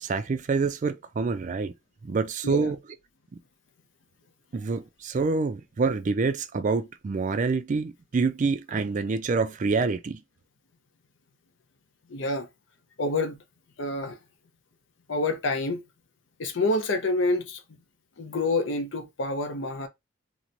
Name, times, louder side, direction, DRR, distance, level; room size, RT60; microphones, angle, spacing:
voice 1, 0.0-1.7 2.0-2.8 3.3-3.4 4.5-10.2, right 4 dB, 40° right, 0.4 m, -27 dB
voice 2, 12.1-12.5 13.0-13.4 13.8-14.2 15.1-15.8 16.4-17.8 18.2-19.9, left 2 dB, 70° left, 0.7 m, -27 dB
3.0 x 2.1 x 3.8 m
head